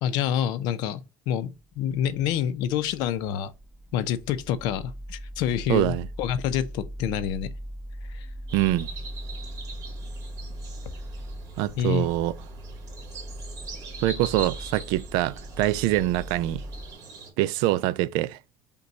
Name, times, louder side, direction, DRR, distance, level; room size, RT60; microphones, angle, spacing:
voice 1, 0.0-3.5 3.9-7.5 8.1-8.3 11.8-12.1, left 9 dB, 75° left, 0.5 m, -27 dB
sound 1, 1.6-16.9, equal, 10° right, 0.4 m, -40 dB
voice 2, 5.7-6.1 8.5-8.9 11.6-12.4 14.0-16.6 17.4-18.4, right 15 dB, 90° right, 0.3 m, -24 dB
sound 2, 8.5-17.3, right 4 dB, 50° right, 1.8 m, -42 dB
5.3 x 2.2 x 3.9 m
cardioid pair, 155°, 7 cm